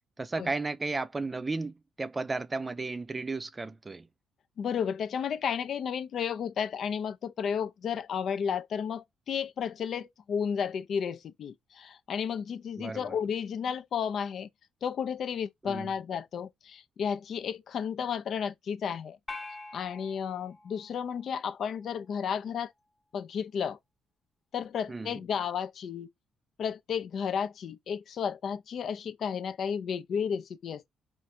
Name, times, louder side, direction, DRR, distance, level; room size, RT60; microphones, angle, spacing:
voice 1, 0.2-4.1 12.8-13.2 15.6-15.9 24.9-25.2, right 3 dB, 25° right, 0.5 m, -34 dB
voice 2, 4.6-14.5 14.8-19.2 19.7-22.7 23.1-23.8 24.5-26.1 26.6-30.9, left 7 dB, 60° left, 0.5 m, -33 dB
sound 1, 19.3-21.8, left 3 dB, 20° left, 0.8 m, -45 dB
4.5 x 2.6 x 4.3 m
cardioid pair, 90°, 0 cm